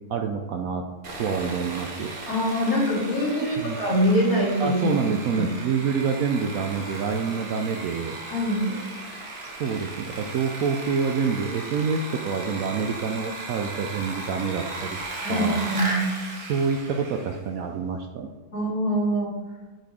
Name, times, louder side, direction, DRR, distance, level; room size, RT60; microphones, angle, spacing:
voice 1, 0.1-0.8 1.2-2.1 3.4-3.8 4.6-8.1 9.6-15.0 15.3-15.6 16.5-18.3, right 5 dB, 70° right, 4 dB, 0.9 m, -27 dB
Sawing, 1.0-17.5, right 2 dB, 40° right, 0.9 m, -36 dB
voice 2, 2.3-4.8 5.4-5.5 8.3-8.7 15.2-16.0 18.5-19.3, equal, 55° left, -6 dB, 2.6 m, -24 dB
6.6 x 4.2 x 4.8 m, 1.3 s
omnidirectional pair, 1.8 m